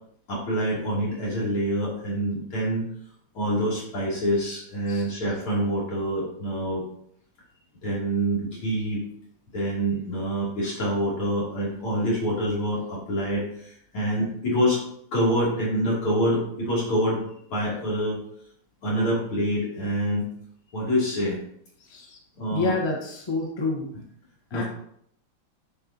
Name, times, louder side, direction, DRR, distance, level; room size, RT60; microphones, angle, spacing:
voice 1, 0.3-2.8 3.3-6.8 7.8-9.0 9.5-14.8 15.1-17.2 17.5-18.2 18.8-20.3 20.7-21.4 22.4-22.8 24.5-24.6, equal, 80° left, -6 dB, 3.9 m, -26 dB
voice 2, 22.5-23.9 24.5-24.6, left 3 dB, 15° left, -1 dB, 1.0 m, -28 dB
9.7 x 5.5 x 2.9 m, 0.68 s
omnidirectional pair, 2.3 m